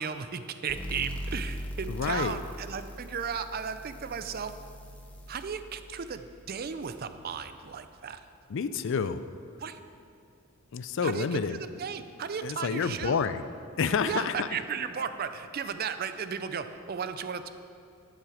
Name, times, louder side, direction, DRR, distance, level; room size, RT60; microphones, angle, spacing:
voice 1, 0.0-4.5 5.3-8.2 9.6-9.8 11.0-13.2 14.1-17.5, right 6 dB, 45° right, 10 dB, 0.4 m, -35 dB
sound 1, 0.7-8.0, equal, 5° left, 0.7 m, -41 dB
voice 2, 1.9-2.4 8.5-9.2 10.7-11.6 12.4-13.4 13.8-14.5, left 6 dB, 60° left, 12 dB, 0.4 m, -29 dB
10.5 x 7.6 x 5.0 m, 2.4 s
head